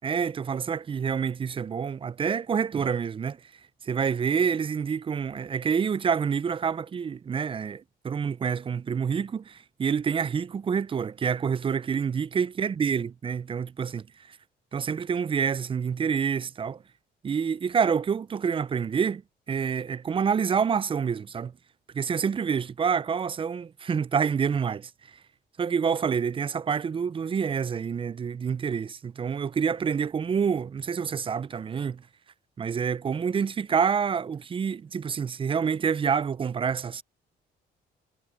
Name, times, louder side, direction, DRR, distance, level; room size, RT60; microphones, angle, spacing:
voice 1, 0.0-3.4 3.8-14.4 14.7-16.8 17.2-19.2 19.5-21.5 21.9-24.9 25.6-32.0 32.6-37.0, right 6 dB, 25° right, 0.3 m, -27 dB
cardioid pair, 90°, 20 cm